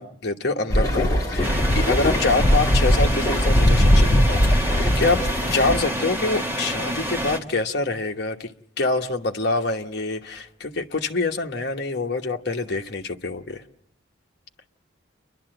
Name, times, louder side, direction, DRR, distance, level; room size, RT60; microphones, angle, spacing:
voice 1, 0.0-8.5 8.8-13.6, left 3 dB, 55° left, 1.1 m, -26 dB
sound 1, 0.7-5.9, equal, 15° left, 2.2 m, -20 dB
sound 2, 1.4-7.4, equal, 10° right, 1.4 m, -28 dB
29.5 x 11.5 x 7.8 m
head